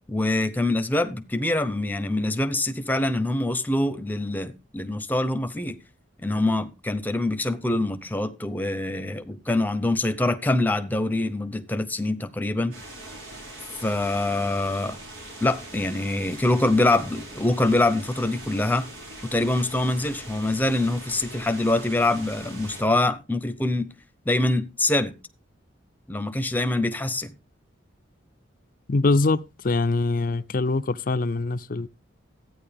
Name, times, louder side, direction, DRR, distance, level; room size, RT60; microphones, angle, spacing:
voice 1, 0.1-5.8 6.2-12.7 13.8-15.0 15.4-18.9 19.3-23.9 24.3-25.1 26.1-27.3, left 2 dB, 10° left, 0.8 m, -24 dB
sound 1, 12.7-22.8, right 1 dB, 90° right, 5.3 m, -42 dB
voice 2, 28.9-31.9, left 3 dB, 45° left, 0.5 m, -23 dB
13.0 x 9.3 x 3.4 m
head